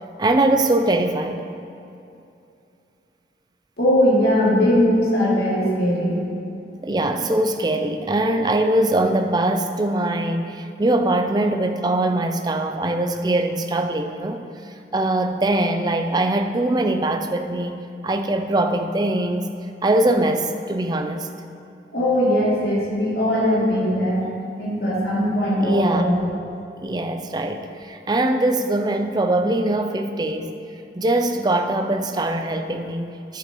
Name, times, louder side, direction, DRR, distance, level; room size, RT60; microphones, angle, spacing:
voice 1, 0.2-1.4 6.8-14.4 14.9-17.8 18.0-19.5 19.8-21.3 25.6-26.0 26.8-30.5 31.0-33.4, right 1 dB, 25° right, 6 dB, 0.4 m, -22 dB
voice 2, 3.8-6.2 21.9-24.3 24.6-26.2, equal, 60° left, -6 dB, 2.5 m, -20 dB
11.0 x 10.5 x 3.0 m, 2.6 s
head